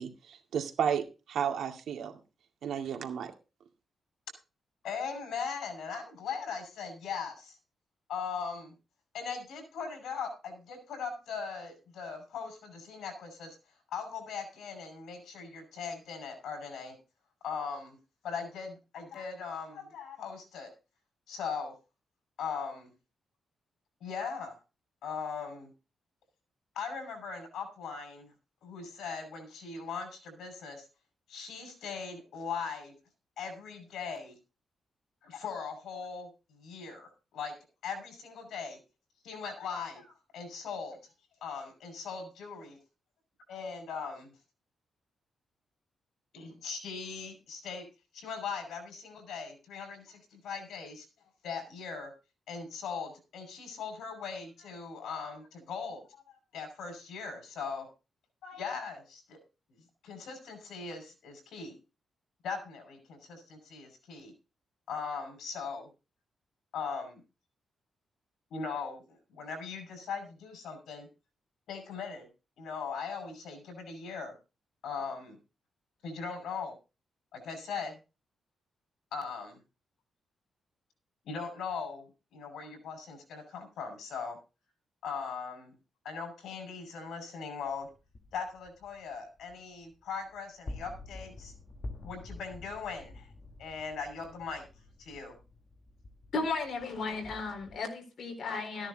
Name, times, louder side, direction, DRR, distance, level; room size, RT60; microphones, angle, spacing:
voice 1, 0.0-2.2 2.6-3.3, right 8 dB, 75° right, 5 dB, 2.1 m, -33 dB
voice 2, 4.8-7.6 8.1-8.7 9.1-13.6 13.9-16.9 17.4-18.0 18.2-20.7 21.3-21.7 22.4-22.9 24.0-24.5 25.0-25.7 26.7-28.3 28.6-30.8 31.3-32.9 33.4-34.3 35.2-37.5 37.8-38.8 39.2-41.0 41.4-42.8 43.5-44.3 46.3-47.8 48.1-51.1 51.4-52.1 52.5-57.9 58.4-59.4 60.0-61.8 62.4-64.3 64.9-65.9 66.7-67.2 68.5-69.0 69.3-71.1 71.7-72.3 72.6-74.3 74.8-75.4 76.0-76.7 77.3-78.0 79.1-79.6 81.2-84.4 85.0-85.7 86.0-87.9 88.3-91.5 92.0-93.3 93.6-94.6 95.0-95.4, left 5 dB, 90° left, 7 dB, 5.8 m, -39 dB
sound 1, 87.6-97.8, left 2 dB, 25° left, 1.5 m, -48 dB
voice 3, 96.3-98.9, left 3 dB, 55° left, 3 dB, 4.2 m, -34 dB
14.5 x 10.0 x 4.0 m, 0.31 s
wide cardioid pair, 140°, 0 cm